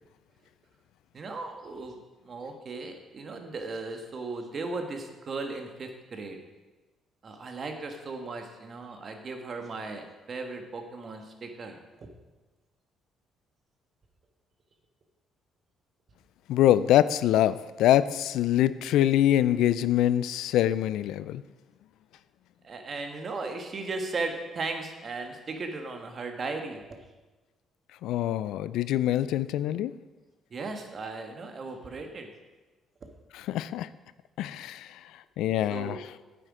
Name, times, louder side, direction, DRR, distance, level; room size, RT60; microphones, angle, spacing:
voice 1, 1.1-2.0 2.2-6.4 7.2-12.1 22.6-26.9 30.5-32.3 35.7-36.0, right 3 dB, 45° right, 5 dB, 1.6 m, -36 dB
voice 2, 16.5-21.4 28.0-29.9 33.3-33.9 34.4-35.0 35.4-36.0, left 12 dB, 80° left, 15 dB, 0.4 m, -24 dB
9.4 x 7.8 x 4.9 m, 1.2 s
supercardioid pair, 75°, 0 cm